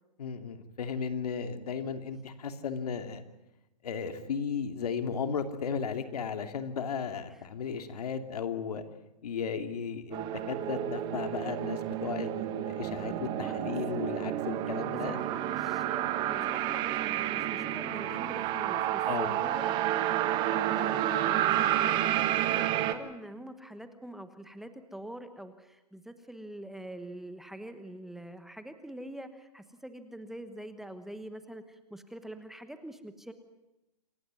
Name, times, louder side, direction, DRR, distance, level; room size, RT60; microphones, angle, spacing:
voice 1, 0.2-3.2 3.8-8.8 9.2-15.2 19.1-19.3, left 6 dB, 65° left, 7 dB, 2.8 m, -35 dB
sound 1, 10.1-22.9, right 12 dB, 20° right, 1.3 m, -30 dB
voice 2, 13.4-13.7 14.6-33.3, right 1 dB, ahead, 9 dB, 1.1 m, -45 dB
27.5 x 15.0 x 9.5 m, 0.94 s
hypercardioid pair, 150°, 21 cm